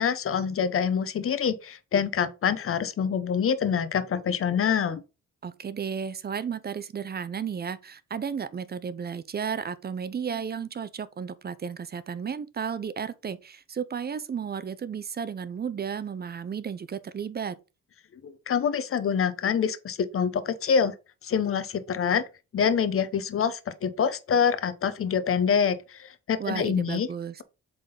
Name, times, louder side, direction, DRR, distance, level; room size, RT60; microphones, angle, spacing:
voice 1, 0.0-5.0 18.2-20.9 21.2-22.2 22.5-27.1, left 7 dB, 45° left, 0.9 m, -26 dB
voice 2, 5.4-17.6 26.4-27.4, right 7 dB, 35° right, 0.5 m, -33 dB
7.7 x 3.8 x 3.9 m
cardioid pair, 90°, 30 cm